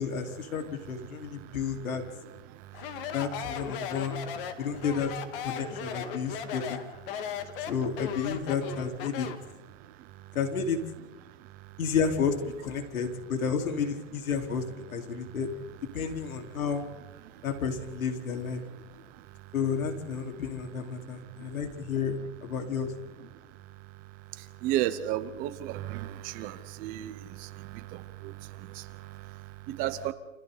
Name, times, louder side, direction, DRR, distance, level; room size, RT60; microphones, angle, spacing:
voice 1, 0.0-2.0 3.1-4.3 4.6-5.1 5.4-6.8 7.7-9.3 10.3-10.8 11.8-15.5 15.9-16.8 17.4-18.6 19.5-22.9, left 6 dB, 75° left, 3 dB, 4.4 m, -31 dB
voice 2, 1.1-1.7 2.5-3.1 3.8-3.9 4.5-4.7 6.1-6.5 7.1-7.7 9.7-10.4 11.2-11.8 15.1-15.4 17.2-17.5 18.8-19.5 20.9-21.6 23.3-30.1, right 13 dB, 20° right, 11 dB, 0.9 m, -37 dB
Speech, 2.7-9.5, left 8 dB, 40° left, 2.2 m, -37 dB
29.5 x 28.0 x 4.1 m, 1.1 s
hypercardioid pair, 160°, 42 cm